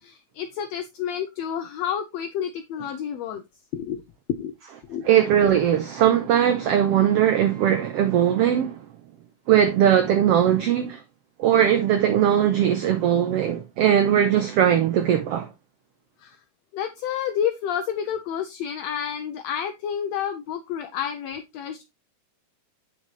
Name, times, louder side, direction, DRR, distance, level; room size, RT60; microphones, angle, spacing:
voice 1, 0.0-3.4 3.7-4.0 4.3-4.5 4.9-5.1 16.2-16.4 16.7-21.8, left 9 dB, 80° left, 1.5 m, -29 dB
voice 2, 5.1-8.8 9.5-11.0 11.4-15.5, right 10 dB, 80° right, 1.3 m, -20 dB
7.8 x 6.4 x 3.2 m
omnidirectional pair, 3.7 m